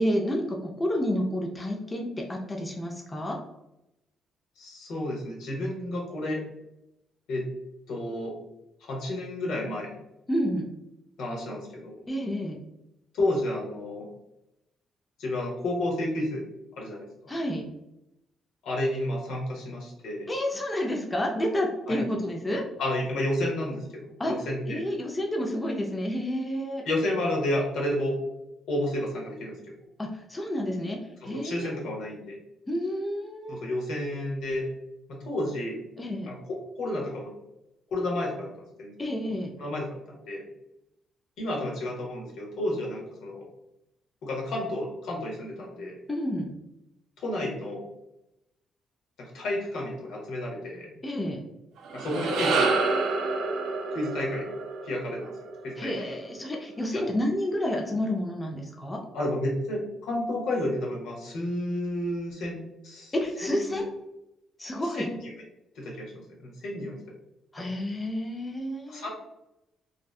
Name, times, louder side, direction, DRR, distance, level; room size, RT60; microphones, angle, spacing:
voice 1, 0.0-3.4 10.3-10.7 12.1-12.6 17.3-17.7 20.3-22.6 24.2-24.3 24.7-26.8 30.0-31.0 31.2-31.8 32.7-33.7 36.0-36.3 39.0-39.5 46.1-46.5 51.0-51.4 55.8-59.0 63.1-63.8 64.6-65.1 67.5-69.1, equal, 20° left, 0 dB, 0.4 m, -30 dB
voice 2, 4.6-6.4 7.3-7.5 7.9-8.3 8.8-10.0 11.2-12.0 13.1-14.1 15.2-16.4 16.8-17.3 18.6-20.3 21.9-22.0 22.8-24.8 26.9-28.2 28.7-29.6 31.2-32.4 33.5-34.7 35.1-35.8 36.3-37.3 37.9-38.5 38.8-38.9 39.6-40.4 41.4-43.4 44.2-45.9 47.2-47.9 49.2-50.9 51.9-52.7 53.9-54.5 54.8-55.3 55.6-55.9 56.9-57.0 59.1-63.1 63.4-63.9 64.9-65.3 65.7-67.0 67.6-67.7 68.9-69.1, left 1 dB, 80° left, -2 dB, 0.8 m, -31 dB
sound 1, 51.8-56.2, right 3 dB, 85° right, 0.4 m, -28 dB
2.6 x 2.1 x 2.3 m, 0.87 s
cardioid pair, 90°, 0 cm